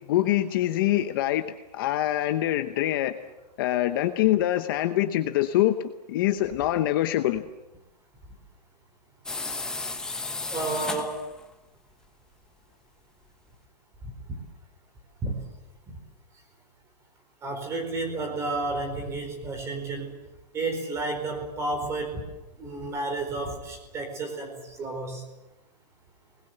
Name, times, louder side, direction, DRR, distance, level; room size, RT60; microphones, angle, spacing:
voice 1, 0.1-1.4 1.7-3.1 3.6-5.7 6.1-7.4, left 14 dB, 30° left, 9 dB, 0.9 m, -24 dB
sound 1, 9.3-11.4, left 3 dB, 5° left, 1.1 m, -33 dB
voice 2, 10.5-11.2 15.2-15.3 15.9-16.0 17.4-20.1 20.5-22.2 22.6-25.2, right 2 dB, 15° right, 4 dB, 4.5 m, -31 dB
27.0 x 20.0 x 7.9 m, 0.99 s
hypercardioid pair, 170°, 21 cm